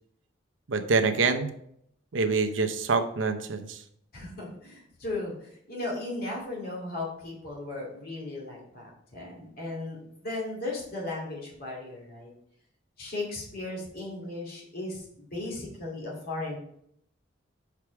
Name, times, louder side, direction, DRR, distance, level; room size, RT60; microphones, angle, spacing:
voice 1, 0.7-1.5 2.1-3.8, right 4 dB, 80° right, 7 dB, 0.7 m, -26 dB
voice 2, 4.1-12.3 13.0-16.6, left 2 dB, 50° left, -3 dB, 2.4 m, -36 dB
5.8 x 4.8 x 4.7 m, 0.72 s
head